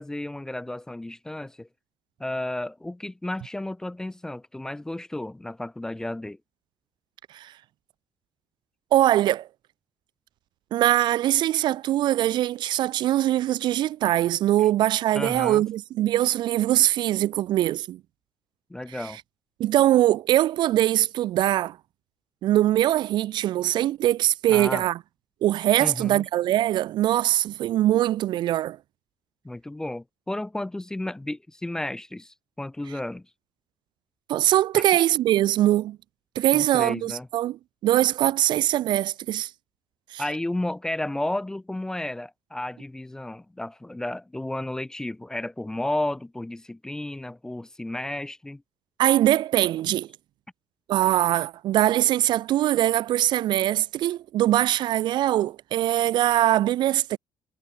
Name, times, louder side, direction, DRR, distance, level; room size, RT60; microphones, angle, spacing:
voice 1, 0.0-1.7 2.2-6.4 14.6-14.7 15.1-15.6 18.7-19.2 24.5-24.9 25.8-26.3 29.4-33.3 34.7-34.8 36.5-37.3 40.2-48.6, left 1 dB, 5° left, 0.5 m, -32 dB
voice 2, 8.9-9.5 10.7-18.0 19.6-21.8 22.4-25.0 25.4-28.8 34.3-36.0 36.4-37.6 37.8-39.5 40.1-40.2 49.0-50.1 50.9-57.2, right 13 dB, 55° right, 0.4 m, -22 dB
cardioid pair, 170°, 10 cm